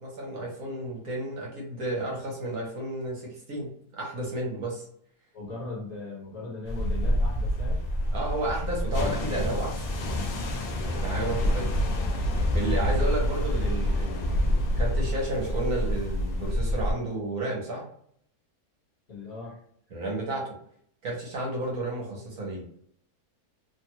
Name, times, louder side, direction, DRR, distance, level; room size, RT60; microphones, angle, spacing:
voice 1, 0.0-4.8 8.1-9.8 10.7-11.7 12.5-17.8 19.9-20.5 21.0-22.6, right 1 dB, 70° right, -2 dB, 1.3 m, -32 dB
voice 2, 5.3-7.8 19.1-19.6, left 3 dB, 45° left, -6 dB, 1.5 m, -39 dB
sound 1, 6.7-16.9, left 1 dB, 85° left, 0.5 m, -27 dB
3.0 x 2.3 x 2.9 m, 0.64 s
omnidirectional pair, 1.6 m